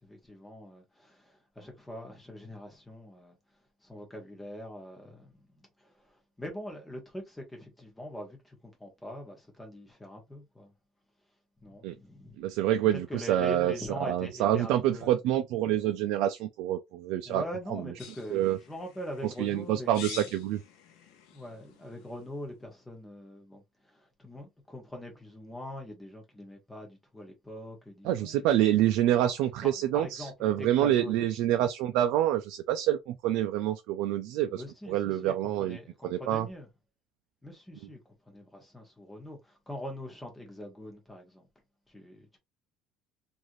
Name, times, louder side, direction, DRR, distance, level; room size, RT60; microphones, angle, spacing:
voice 1, 0.0-3.4 3.8-10.7 11.6-12.5 12.9-15.2 17.2-20.4 21.3-28.7 29.0-29.3 29.6-31.3 34.5-36.7 37.4-38.0 38.3-41.5 41.9-42.4, left 1 dB, 5° left, 0.9 m, -43 dB
voice 2, 12.4-13.7 14.1-17.4 18.3-18.6 19.4-20.6 28.0-34.6 34.9-35.8 36.0-36.5, right 12 dB, 65° right, 0.3 m, -27 dB
sound 1, 18.0-22.5, left 9 dB, 80° left, 0.7 m, -48 dB
3.1 x 2.5 x 2.6 m
cardioid pair, 175°, 0 cm